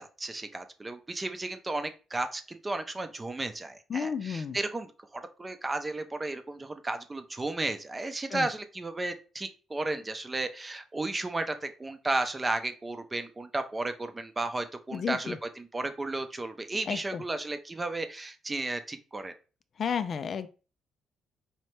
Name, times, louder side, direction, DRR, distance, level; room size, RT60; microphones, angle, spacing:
voice 1, 0.0-19.3, right 2 dB, 20° right, 9 dB, 0.6 m, -34 dB
voice 2, 3.9-4.6 8.3-8.5 14.9-15.4 16.9-17.2 19.8-20.5, left 7 dB, 50° left, 11 dB, 0.3 m, -32 dB
4.3 x 2.8 x 3.2 m, 0.34 s
cardioid pair, 90°, 0 cm